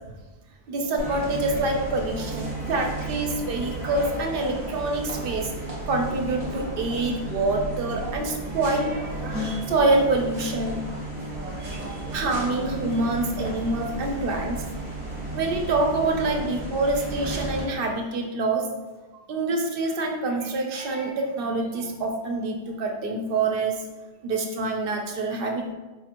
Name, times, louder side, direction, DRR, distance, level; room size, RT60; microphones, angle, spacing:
voice 1, 0.7-5.5 5.9-10.8 11.6-14.7 15.3-18.7 19.3-23.8 24.2-25.7, right 2 dB, 65° right, 2 dB, 0.7 m, -26 dB
sound 1, 1.0-17.6, right 1 dB, 35° right, 1.0 m, -33 dB
4.2 x 2.8 x 2.5 m, 1.2 s
omnidirectional pair, 1.1 m